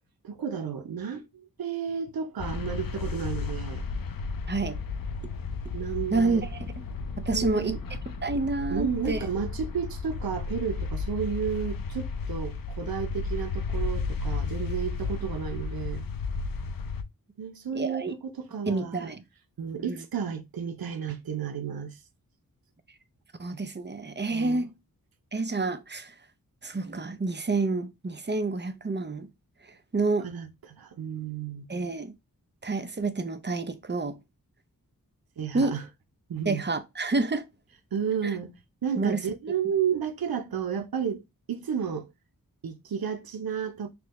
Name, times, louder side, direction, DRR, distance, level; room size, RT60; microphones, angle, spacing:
voice 1, 0.2-3.8 5.7-6.5 7.3-7.8 8.7-16.1 17.4-19.1 19.6-22.0 24.3-24.6 30.2-31.7 35.4-35.8 36.3-36.6 37.9-38.5 38.8-41.2 41.5-42.1 42.6-43.9, right 7 dB, 80° right, 0.7 m, -32 dB
sound 1, 2.4-17.0, left 4 dB, 70° left, 0.6 m, -33 dB
voice 2, 4.5-4.8 6.1-6.7 7.2-7.8 8.2-9.2 17.7-18.1 18.7-19.2 19.8-20.0 23.4-24.7 25.3-26.1 26.6-29.3 29.9-30.3 31.7-32.1 32.6-34.2 35.5-35.8 36.5-37.4 38.2-38.3 39.0-39.2, right 3 dB, 30° right, 0.7 m, -28 dB
6.0 x 2.2 x 3.0 m
wide cardioid pair, 75°, 36 cm